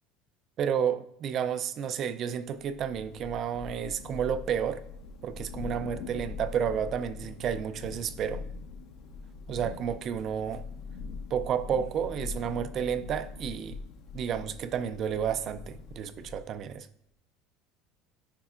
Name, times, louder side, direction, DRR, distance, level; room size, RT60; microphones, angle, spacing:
voice 1, 0.6-4.8 5.2-8.4 9.5-10.6 11.3-13.8 14.1-16.9, right 8 dB, 40° right, 0.4 m, -31 dB
Thunder / Rain, 2.6-16.7, left 4 dB, 65° left, 1.0 m, -42 dB
10.0 x 4.6 x 2.4 m
supercardioid pair, 135°, 0 cm